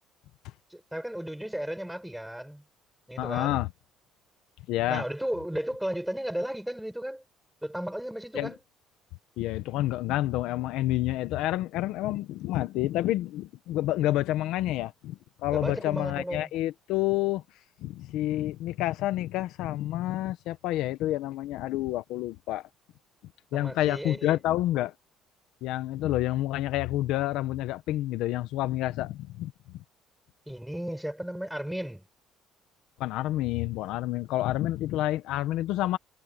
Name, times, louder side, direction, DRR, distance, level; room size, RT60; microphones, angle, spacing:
voice 1, 0.7-2.6 3.1-3.6 4.9-7.2 7.6-8.6 15.4-16.5 23.5-24.4 30.5-32.0, right 1 dB, 5° right, 7.4 m, -34 dB
voice 2, 3.2-3.7 4.7-5.0 8.3-8.5 9.4-17.4 17.8-22.6 23.5-24.9 25.6-29.5 33.0-36.0, left 15 dB, 80° left, 1.0 m, -29 dB
cardioid pair, 130°, 0 cm